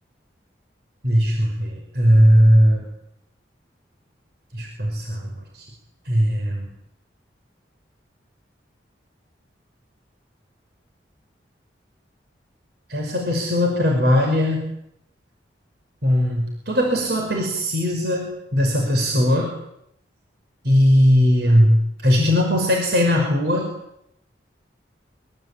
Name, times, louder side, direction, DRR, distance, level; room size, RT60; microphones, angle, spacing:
voice 1, 1.0-2.9 4.5-5.6 6.1-6.7 12.9-14.7 16.0-19.5 20.6-23.7, equal, 60° right, 1 dB, 5.7 m, -19 dB
26.5 x 23.5 x 8.7 m, 0.78 s
head